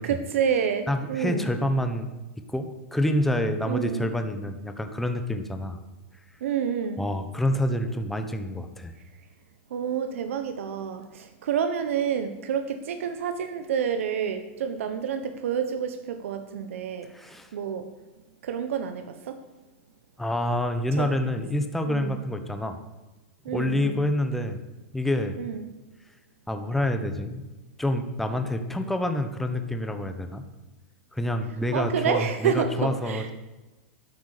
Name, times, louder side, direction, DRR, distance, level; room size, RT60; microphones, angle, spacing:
voice 1, 0.0-1.5 3.7-4.0 6.4-7.0 9.7-17.1 17.5-17.9 18.4-19.4 21.0-21.1 21.8-22.1 23.4-23.9 25.4-25.6 31.7-33.3, right 7 dB, 80° right, 8 dB, 1.3 m, -28 dB
voice 2, 0.9-2.1 2.5-5.8 7.0-8.9 17.1-17.5 20.2-22.8 23.5-24.6 24.9-25.4 26.5-27.4 27.8-30.4 31.1-33.3, left 1 dB, 5° left, 6 dB, 1.1 m, -27 dB
12.5 x 9.5 x 6.7 m, 1.1 s
supercardioid pair, 160°, 7 cm